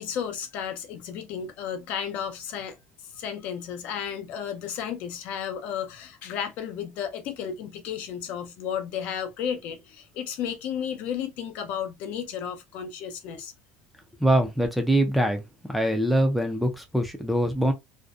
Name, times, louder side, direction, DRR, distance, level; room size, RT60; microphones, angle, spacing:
voice 1, 0.0-2.8 3.0-13.5, left 8 dB, 55° left, 0.5 m, -33 dB
voice 2, 14.2-15.4 15.7-17.7, right 1 dB, ahead, 0.4 m, -23 dB
2.5 x 2.1 x 2.3 m
cardioid pair, 160°, 3 cm